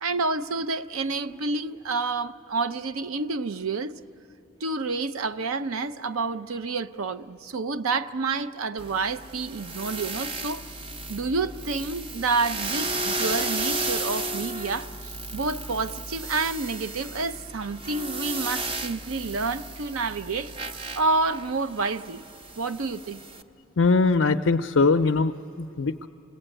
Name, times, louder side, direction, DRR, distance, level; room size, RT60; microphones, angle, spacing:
voice 1, 0.0-3.9 4.6-10.6 11.1-20.5 21.0-22.2 22.6-23.2, right 3 dB, 90° right, 0.7 m, -29 dB
sound 1, 8.8-23.4, right 2 dB, 25° right, 0.6 m, -34 dB
voice 2, 23.8-26.1, left 4 dB, 65° left, 0.5 m, -22 dB
28.5 x 19.5 x 9.0 m
head